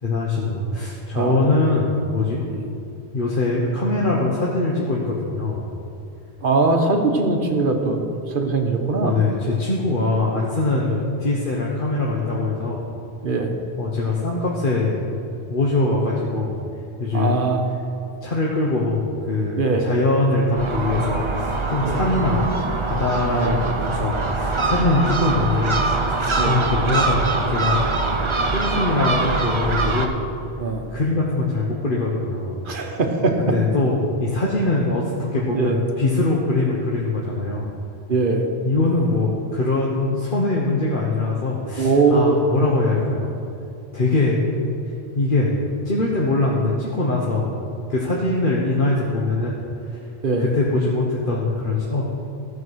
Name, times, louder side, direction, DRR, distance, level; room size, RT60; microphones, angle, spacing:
voice 1, 0.0-2.4 3.1-5.7 9.0-12.8 13.8-15.1 15.5-16.6 17.0-17.4 18.2-22.5 22.8-25.8 26.1-27.9 28.5-30.2 30.9-32.6 33.4-37.7 38.6-43.3 43.9-44.4 45.1-45.5 45.8-47.5 47.9-49.6 49.9-50.0 50.4-52.1, left 2 dB, 50° left, -3 dB, 1.2 m, -22 dB
voice 2, 1.1-1.5 2.5-2.7 6.4-9.1 10.9-11.0 13.2-13.5 17.1-17.6 19.6-19.9 21.8-22.0 23.3-23.6 26.4-26.5 30.6-30.8 32.6-33.4 35.5-35.8 38.1-38.4 41.8-42.4 50.2-50.4, right 3 dB, 55° right, 4 dB, 1.1 m, -21 dB
Gull seagull, 20.6-30.1, right 3 dB, 30° right, 0.7 m, -23 dB
14.5 x 5.0 x 6.3 m, 2.6 s
omnidirectional pair, 1.1 m